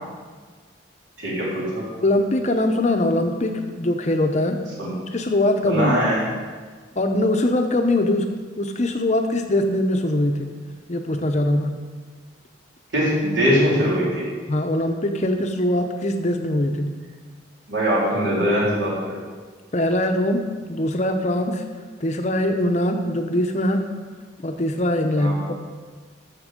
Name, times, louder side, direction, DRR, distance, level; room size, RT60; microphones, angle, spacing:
voice 1, 1.2-1.9 4.8-5.0 5.6-6.3 12.9-14.3 17.7-19.2 25.2-25.4, equal, 65° right, -6 dB, 4.0 m, -21 dB
voice 2, 2.0-4.6 5.1-6.0 7.0-8.3 8.6-10.5 10.9-11.8 14.5-16.9 19.7-21.6 22.0-23.8 24.4-25.5, left 1 dB, 35° left, 5 dB, 0.7 m, -22 dB
13.5 x 6.6 x 5.2 m, 1.5 s
head